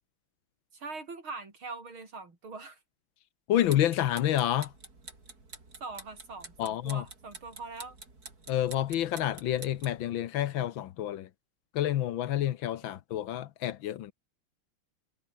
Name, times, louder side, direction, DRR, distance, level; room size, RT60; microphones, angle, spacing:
voice 1, 0.7-2.8 5.8-8.0 12.8-12.9, right 3 dB, 70° right, 5.5 m, -42 dB
voice 2, 3.5-4.7 6.6-7.0 8.5-11.3 11.7-14.1, left 12 dB, 70° left, 1.6 m, -29 dB
sound 1, 3.6-10.0, right 3 dB, 45° right, 4.7 m, -49 dB
omnidirectional pair, 2.3 m